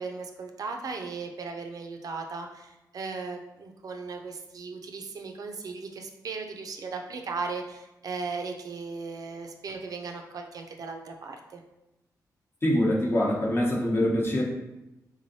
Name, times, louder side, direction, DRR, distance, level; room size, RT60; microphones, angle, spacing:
voice 1, 0.0-11.6, right 4 dB, 60° right, 3 dB, 0.4 m, -37 dB
voice 2, 12.6-14.4, left 1 dB, 35° left, -2 dB, 0.9 m, -24 dB
3.6 x 3.1 x 2.7 m, 0.98 s
cardioid pair, 80°, 7 cm